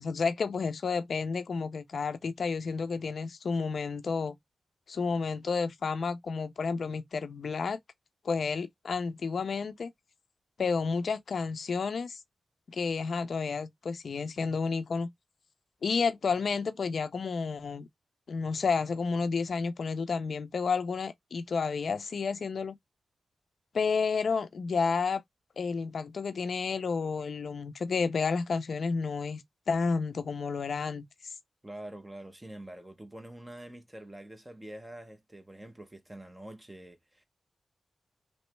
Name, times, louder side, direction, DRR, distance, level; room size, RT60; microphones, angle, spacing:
voice 1, 0.0-4.3 4.9-7.8 8.2-9.9 10.6-12.2 12.7-15.1 15.8-17.9 18.3-22.8 23.7-25.2 25.6-31.0, left 5 dB, 55° left, 0.4 m, -31 dB
voice 2, 31.6-37.2, right 1 dB, 10° right, 0.6 m, -46 dB
3.1 x 2.9 x 3.1 m
wide cardioid pair, 175°, 0 cm